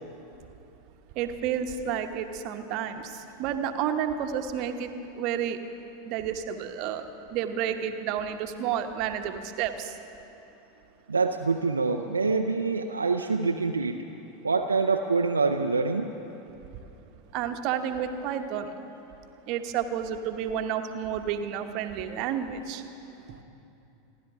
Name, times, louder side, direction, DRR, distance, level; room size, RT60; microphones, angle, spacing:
voice 1, 1.2-5.6 6.0-9.9 17.3-18.7 19.5-22.8, right 8 dB, 50° right, 7 dB, 1.1 m, -31 dB
voice 2, 11.1-14.0 14.4-16.1, right 4 dB, 85° right, 4 dB, 0.5 m, -25 dB
29.0 x 11.0 x 3.7 m, 2.9 s
figure-of-eight pair, 85°, 0 cm